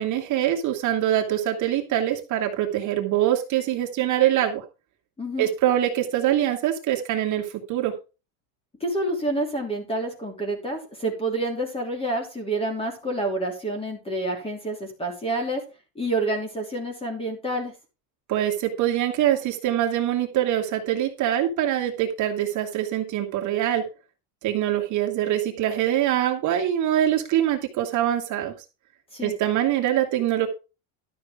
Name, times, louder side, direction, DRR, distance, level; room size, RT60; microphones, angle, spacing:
voice 1, 0.0-4.6 5.4-7.9 18.3-23.8 24.4-28.5 29.2-30.5, right 12 dB, 45° right, 3 dB, 2.1 m, -24 dB
voice 2, 8.8-15.6 15.9-17.7 29.1-29.3, right 1 dB, 15° left, 4 dB, 3.2 m, -28 dB
12.5 x 6.4 x 5.0 m, 0.31 s
cardioid pair, 160°, 42 cm